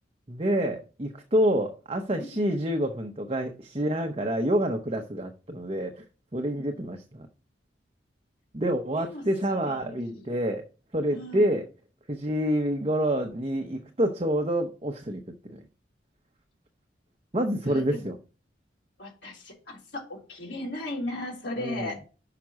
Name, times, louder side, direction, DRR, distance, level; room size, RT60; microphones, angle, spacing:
voice 1, 0.3-6.0 6.3-7.3 8.5-10.6 10.9-11.7 12.1-15.6 17.3-18.2 21.6-21.9, equal, 30° right, 0.8 m, -27 dB
voice 2, 6.6-6.9 8.9-9.2 9.5-10.3 11.1-11.5 17.6-18.1 19.0-22.0, left 1 dB, 70° left, 3.4 m, -37 dB
6.0 x 5.8 x 6.2 m
head